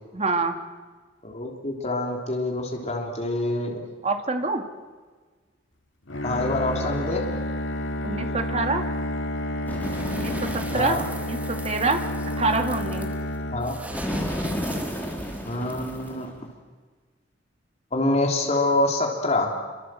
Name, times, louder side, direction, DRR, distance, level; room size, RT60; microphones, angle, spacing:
voice 1, 0.1-0.6 4.0-4.6 8.0-8.8 10.1-12.0 12.4-13.1, right 3 dB, 35° right, 5 dB, 2.4 m, -26 dB
voice 2, 1.2-3.8 6.2-7.2 10.7-11.0 13.5-13.7 15.4-16.5 17.9-19.5, left 2 dB, 40° left, 0 dB, 3.4 m, -26 dB
Bowed string instrument, 6.1-14.3, left 1 dB, 80° left, 2.4 m, -30 dB
Bird, 9.6-11.0 13.9-16.4, equal, 10° left, 4.6 m, -32 dB
sound 1, 9.8-16.2, right 1 dB, 10° right, 2.2 m, -42 dB
28.0 x 25.0 x 7.7 m, 1.4 s
head